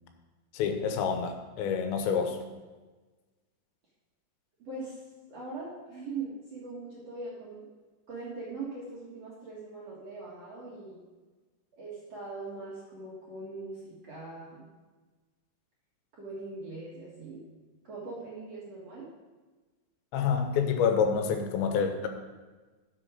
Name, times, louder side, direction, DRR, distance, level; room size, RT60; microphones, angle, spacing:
voice 1, 0.5-2.4 20.1-22.1, left 6 dB, 80° left, 5 dB, 3.3 m, -27 dB
voice 2, 4.6-5.0 5.3-7.7 8.1-11.0 11.7-14.7 16.1-17.4 17.8-19.1, right 3 dB, 45° right, -7 dB, 2.3 m, -41 dB
12.0 x 7.0 x 5.1 m, 1.3 s
omnidirectional pair, 5.1 m